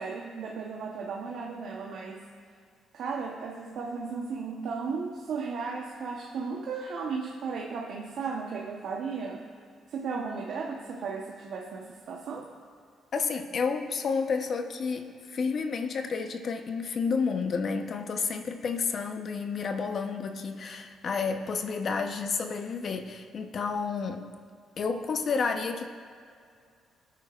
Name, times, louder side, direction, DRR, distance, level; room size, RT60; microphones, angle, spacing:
voice 1, 0.0-2.2 2.9-9.4 9.9-12.5, right 5 dB, 70° right, -1 dB, 1.0 m, -35 dB
voice 2, 13.1-24.3 24.8-25.9, left 5 dB, 55° left, 6 dB, 0.9 m, -30 dB
21.0 x 9.3 x 2.5 m, 2.2 s
cardioid pair, 90°, 0 cm